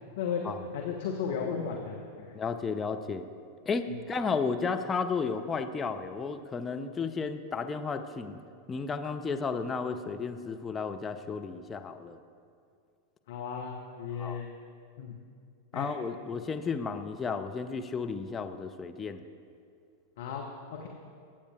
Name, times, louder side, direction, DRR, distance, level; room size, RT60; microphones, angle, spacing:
voice 1, 0.7-2.3 13.3-14.5 15.0-15.1 15.7-15.9 20.2-20.4 20.7-20.9, left 7 dB, 55° left, 0 dB, 0.9 m, -34 dB
voice 2, 2.3-3.3 3.7-8.4 8.7-12.2 14.1-14.4 15.7-19.2, left 5 dB, 20° left, 6 dB, 0.6 m, -33 dB
21.0 x 8.5 x 2.4 m, 2.3 s
figure-of-eight pair, 90°, 0 cm